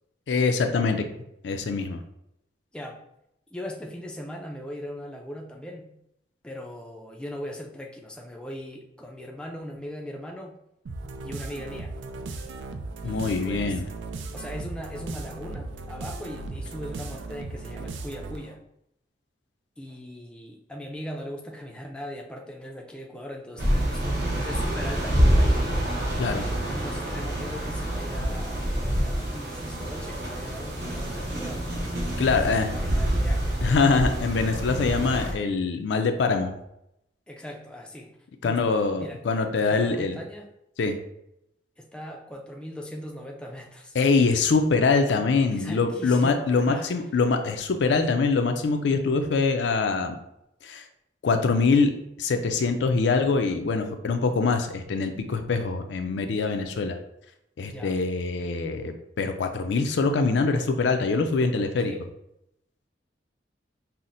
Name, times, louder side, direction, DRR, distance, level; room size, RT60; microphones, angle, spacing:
voice 1, 0.3-1.1 1.4-2.0 13.0-13.9 26.2-26.5 32.2-32.7 33.6-36.5 38.4-40.2 40.8-41.0 43.9-50.2 50.6-50.8 51.2-57.0 57.6-61.9, left 4 dB, 75° left, 6 dB, 0.4 m, -24 dB
voice 2, 3.5-5.9 6.4-10.6 11.2-11.9 13.0-13.8 14.3-18.6 19.8-24.1 24.4-25.6 26.7-31.7 32.2-33.8 37.3-38.2 38.4-39.2 39.7-40.5 41.8-44.0 45.5-46.9 57.6-58.0 61.8-62.0, equal, 5° left, 0 dB, 0.3 m, -39 dB
sound 1, 10.9-18.5, right 3 dB, 90° right, 0.4 m, -37 dB
sound 2, 23.6-35.3, right 1 dB, 60° right, 0.8 m, -26 dB
5.6 x 2.0 x 2.5 m, 0.80 s
head